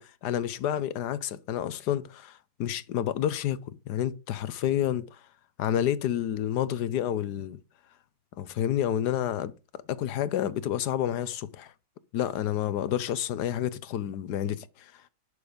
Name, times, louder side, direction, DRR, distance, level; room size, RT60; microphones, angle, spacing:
voice 1, 0.0-5.2 5.6-7.6 8.4-9.5 9.9-11.7 12.1-15.1, left 11 dB, 75° left, 1.4 m, -29 dB
11.5 x 6.8 x 5.2 m
omnidirectional pair, 1.8 m